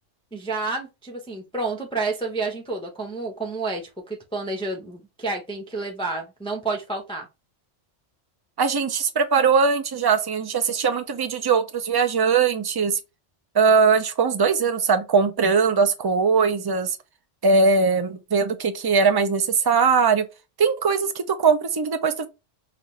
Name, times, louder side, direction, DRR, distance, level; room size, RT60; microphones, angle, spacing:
voice 1, 0.3-7.3, right 3 dB, 5° left, 0.6 m, -30 dB
voice 2, 8.6-13.0 13.5-17.0 17.4-20.2 20.6-22.3, right 5 dB, 35° right, 0.4 m, -20 dB
5.8 x 2.5 x 3.1 m
omnidirectional pair, 1.2 m